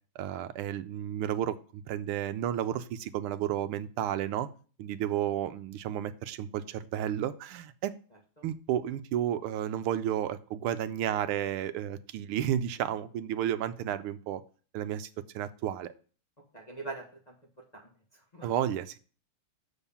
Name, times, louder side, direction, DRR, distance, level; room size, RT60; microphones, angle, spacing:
voice 1, 0.2-4.5 4.8-7.9 8.4-14.4 14.7-15.1 15.3-15.9 18.4-19.0, right 10 dB, 85° right, 12 dB, 1.5 m, -32 dB
voice 2, 16.5-17.3 17.7-18.5, right 3 dB, 25° left, -2 dB, 1.0 m, -43 dB
7.3 x 4.2 x 6.8 m, 0.39 s
omnidirectional pair, 2.4 m